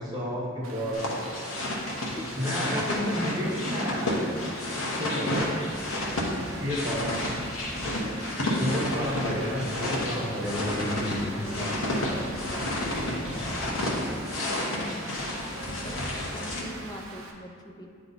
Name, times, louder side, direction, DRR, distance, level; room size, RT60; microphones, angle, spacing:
voice 1, 0.0-1.3 2.3-4.1 5.0-5.5 6.6-7.2 8.6-11.4, equal, 20° right, -6 dB, 1.2 m, -31 dB
Rain, 0.6-17.3, right 3 dB, 90° right, 0.7 m, -46 dB
sound 1, 0.9-16.6, left 1 dB, 90° left, 1.0 m, -31 dB
voice 2, 2.2-2.8 5.1-5.2 10.4-15.2 15.8-17.9, equal, 20° left, 1 dB, 0.5 m, -43 dB
8.9 x 3.1 x 3.9 m, 2.3 s
head